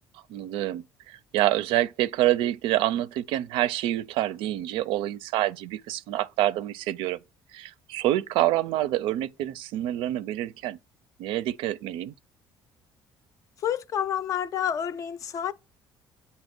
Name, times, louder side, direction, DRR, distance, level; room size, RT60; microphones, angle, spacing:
voice 1, 0.3-7.2 7.5-10.8 11.2-12.1, right 14 dB, 90° right, 0.5 m, -27 dB
voice 2, 13.6-15.5, left 9 dB, 40° left, 0.4 m, -29 dB
8.0 x 2.8 x 5.9 m
cardioid pair, 160°, 9 cm